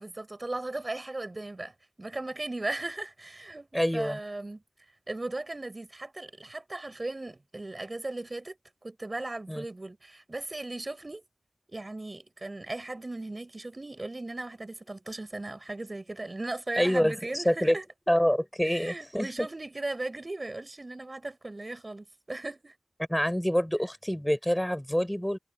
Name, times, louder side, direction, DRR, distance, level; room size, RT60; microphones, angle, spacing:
voice 1, 0.0-4.6 5.1-11.2 11.7-17.8 18.6-22.7, right 2 dB, 45° right, 6.5 m, -37 dB
voice 2, 3.7-4.2 9.5-9.6 16.8-17.8 18.1-19.5 23.1-25.4, equal, 5° left, 6.3 m, -26 dB
cardioid pair, 40°, 0 cm